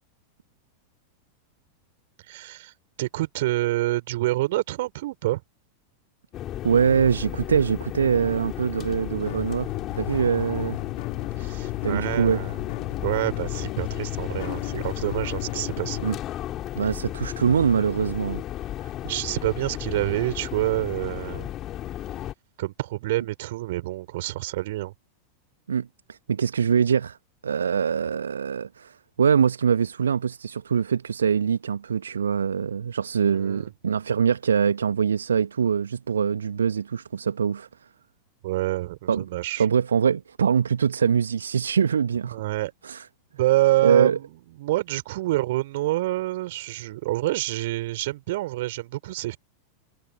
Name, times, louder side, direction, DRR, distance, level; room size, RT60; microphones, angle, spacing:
voice 1, 2.3-2.7 3.0-5.4 11.4-12.6 13.0-16.0 19.0-21.5 22.6-24.9 33.3-33.7 38.4-39.6 42.3-42.7 43.3-44.3 44.6-49.4, right 17 dB, 55° right, 4.4 m, -27 dB
sound 1, 6.3-22.3, left 13 dB, 30° left, 4.5 m, -34 dB
voice 2, 6.6-9.7 10.0-10.8 11.8-12.4 16.0-16.2 16.7-18.4 25.7-27.2 27.4-37.7 39.1-39.3 39.6-42.4 42.8-43.1 43.8-44.2, right 7 dB, 70° right, 1.4 m, -23 dB
sound 2, 9.3-16.1, left 22 dB, 50° left, 4.4 m, -35 dB
figure-of-eight pair, 90°, 0 cm